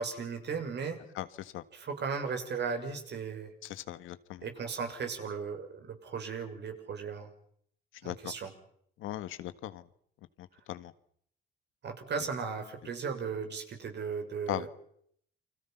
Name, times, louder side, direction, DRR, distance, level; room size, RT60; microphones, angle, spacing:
voice 1, 0.0-1.0 1.7-3.5 4.4-7.3 8.0-8.5 11.8-14.7, right 5 dB, 60° right, 5 dB, 6.6 m, -36 dB
voice 2, 1.1-1.6 3.6-4.4 8.0-8.3 9.0-9.8 10.4-10.9 14.5-14.7, left 13 dB, 90° left, 13 dB, 1.7 m, -38 dB
29.0 x 25.5 x 5.9 m, 0.67 s
cardioid pair, 90°, 20 cm